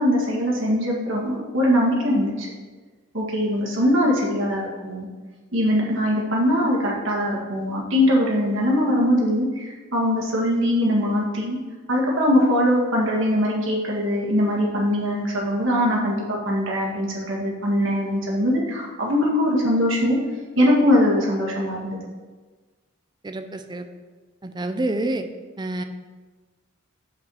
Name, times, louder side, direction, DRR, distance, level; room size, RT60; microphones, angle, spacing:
voice 1, 0.0-2.5 3.1-5.1 5.5-11.6 11.9-20.2 20.6-22.0, equal, 65° right, -3 dB, 1.9 m, -21 dB
voice 2, 23.2-23.9 24.4-25.3 25.6-25.8, right 2 dB, 20° right, 7 dB, 0.5 m, -27 dB
5.8 x 5.1 x 6.3 m, 1.3 s
head